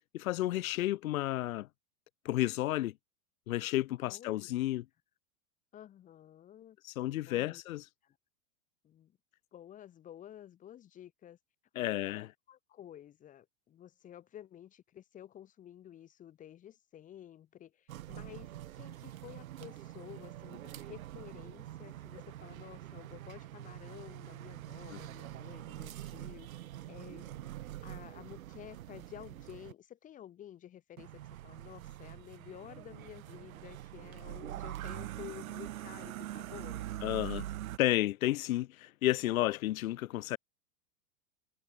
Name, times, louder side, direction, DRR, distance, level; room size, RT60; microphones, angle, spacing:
voice 1, 0.1-1.7 2.2-2.9 3.5-4.8 6.8-7.8 11.7-12.3 24.9-25.0 37.0-37.4 37.8-40.4, left 15 dB, 70° left, 1.2 m, -32 dB
voice 2, 4.0-4.8 5.7-6.8 7.3-7.6 8.0-8.2 8.8-9.1 9.5-11.4 11.7-27.5 27.8-36.8, left 11 dB, 20° left, 4.2 m, -52 dB
sound 1, 17.9-29.7 31.0-37.8, right 13 dB, 70° right, 3.8 m, -44 dB
supercardioid pair, 175°, 43 cm